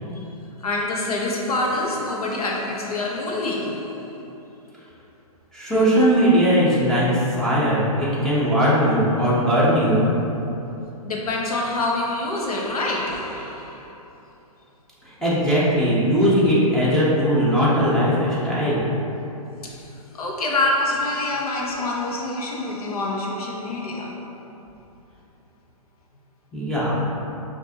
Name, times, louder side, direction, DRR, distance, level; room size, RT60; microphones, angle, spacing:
voice 1, 0.6-4.3 8.1-8.4 11.0-14.0 19.6-24.3, left 2 dB, 75° left, -2 dB, 0.9 m, -26 dB
voice 2, 5.5-10.1 15.1-18.8 26.5-26.9, equal, ahead, -10 dB, 0.8 m, -19 dB
5.9 x 2.5 x 2.8 m, 2.9 s
hypercardioid pair, 140°, 19 cm